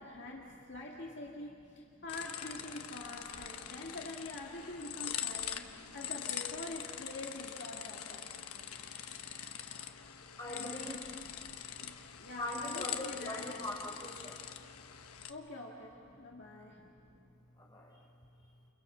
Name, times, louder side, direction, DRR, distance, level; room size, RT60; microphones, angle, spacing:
voice 1, 0.0-5.7 5.9-8.3 10.5-10.8 11.8-13.4 15.3-16.8, left 2 dB, 50° left, -2 dB, 2.1 m, -45 dB
sound 1, 2.1-15.3, left 9 dB, 80° left, 1.1 m, -43 dB
voice 2, 10.4-10.9 11.2-11.3 12.4-14.4 16.3-16.4 16.7-17.2 17.6-18.0, left 1 dB, 20° left, -2 dB, 4.6 m, -42 dB
29.5 x 29.5 x 5.8 m, 2.5 s
head